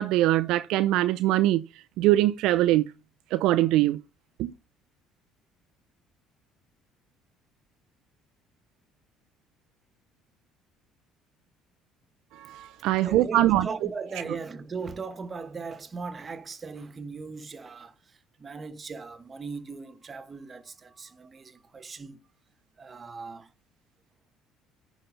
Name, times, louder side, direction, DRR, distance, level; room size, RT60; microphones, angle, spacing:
voice 1, 0.0-1.6 2.0-2.8 3.3-4.0 4.4-4.5 12.3-13.7, right 15 dB, 70° right, 0.4 m, -22 dB
voice 2, 13.0-22.2 22.8-23.5, right 4 dB, 35° right, 1.4 m, -38 dB
10.5 x 4.2 x 5.4 m
hypercardioid pair, 65°, 0 cm